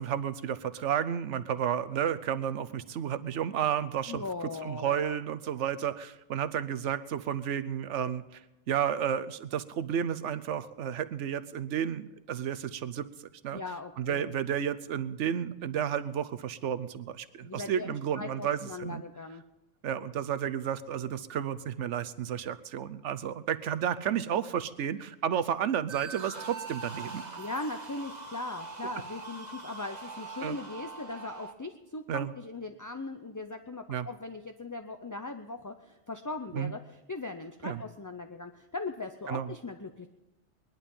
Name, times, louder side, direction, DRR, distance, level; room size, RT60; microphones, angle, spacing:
voice 1, 0.0-4.2 4.6-8.4 8.7-13.1 13.4-13.6 14.0-19.0 19.8-27.3 30.4-30.6 32.1-32.3 33.9-34.1 36.5-36.7 37.6-37.8 39.3-39.5, right 9 dB, 85° right, 14 dB, 1.1 m, -32 dB
voice 2, 4.1-5.2 13.5-14.3 17.4-19.4 27.4-40.1, left 3 dB, 25° left, 6 dB, 0.5 m, -39 dB
sound 1, 25.9-31.5, right 3 dB, 35° right, 1.4 m, -42 dB
20.5 x 11.5 x 5.4 m, 0.96 s
omnidirectional pair, 1.2 m